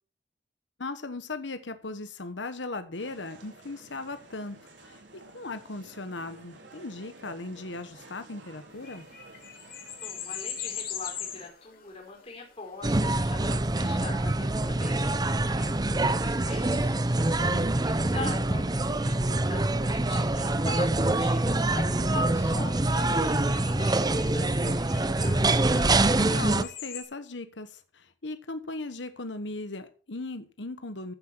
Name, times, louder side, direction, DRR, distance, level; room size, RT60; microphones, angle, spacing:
voice 1, 0.8-9.1 17.4-17.7 25.7-31.1, left 2 dB, 85° left, 10 dB, 1.3 m, -38 dB
sound 1, 3.0-11.5, right 2 dB, 85° right, 4.1 m, -52 dB
sound 2, 8.7-18.0 22.3-27.0, left 8 dB, 55° left, 3.3 m, -43 dB
voice 2, 10.0-17.0 17.7-25.5, left 3 dB, 35° left, -1 dB, 5.0 m, -43 dB
sound 3, 12.8-26.6, right 2 dB, 20° right, 0.8 m, -25 dB
15.0 x 8.1 x 4.6 m, 0.40 s
head